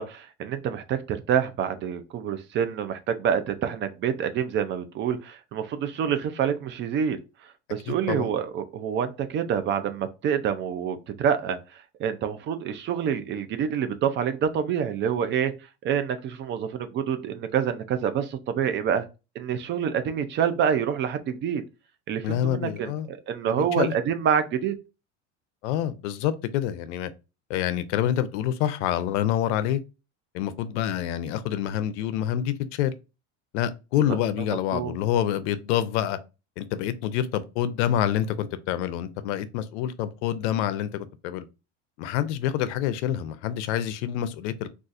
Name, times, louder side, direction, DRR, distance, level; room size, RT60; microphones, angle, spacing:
voice 1, 0.0-7.2 7.4-15.5 15.8-19.0 19.4-21.6 22.1-24.8 34.7-34.9, right 8 dB, 35° right, 0.4 m, -27 dB
voice 2, 7.9-8.3 22.2-23.1 23.5-23.9 25.6-27.1 27.5-29.8 30.3-32.9 33.5-36.2 36.6-41.5 42.0-44.7, left 11 dB, 80° left, 0.5 m, -27 dB
4.0 x 2.4 x 2.4 m
supercardioid pair, 135°, 34 cm